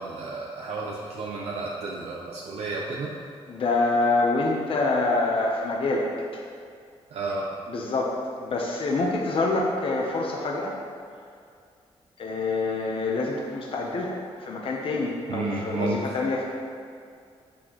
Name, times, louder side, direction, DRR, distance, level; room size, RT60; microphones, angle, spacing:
voice 1, 0.0-3.1 7.1-7.5 15.3-16.1, right 3 dB, 75° right, -3 dB, 0.8 m, -32 dB
voice 2, 3.5-6.4 7.7-10.8 12.2-16.4, left 3 dB, 60° left, -1 dB, 0.9 m, -26 dB
8.7 x 6.3 x 3.1 m, 2.2 s
wide cardioid pair, 130°, 11 cm